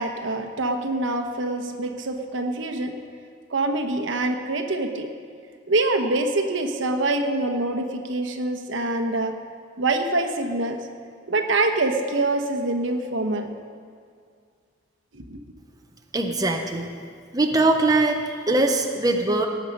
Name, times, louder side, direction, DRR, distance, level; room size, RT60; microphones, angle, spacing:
voice 1, 0.0-2.9 3.5-5.1 5.7-9.3 9.8-10.8 11.3-13.5 15.1-15.4, right 2 dB, 70° right, 5 dB, 1.0 m, -25 dB
voice 2, 16.1-16.9 17.3-19.5, right 2 dB, 20° right, 3 dB, 0.7 m, -21 dB
17.5 x 7.3 x 5.4 m, 2.1 s
head